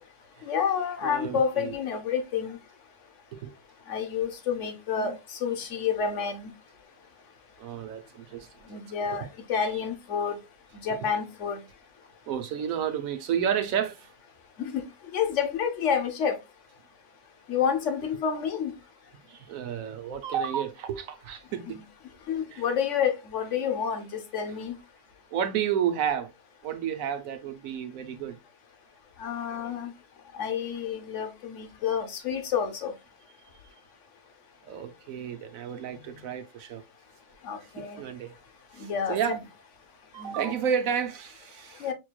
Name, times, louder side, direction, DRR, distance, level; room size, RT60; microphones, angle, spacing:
voice 1, 0.4-2.6 3.9-6.5 8.7-10.4 10.8-11.6 14.6-14.8 15.1-16.4 17.5-18.7 21.7-21.8 22.3-24.8 29.2-29.9 30.3-32.9 37.4-38.0 38.8-39.4 40.2-40.5 41.8-41.9, left 7 dB, 65° left, 1.0 m, -29 dB
voice 2, 1.0-1.7 3.3-3.5 5.0-5.1 7.6-8.8 9.1-9.2 9.5-9.7 12.3-14.1 19.3-21.8 22.5-22.6 25.3-26.3 26.6-28.4 34.6-36.8 38.0-38.4 38.7-39.4 40.1-41.9, right 8 dB, 75° right, 1.1 m, -31 dB
5.0 x 3.1 x 2.2 m
omnidirectional pair, 1.5 m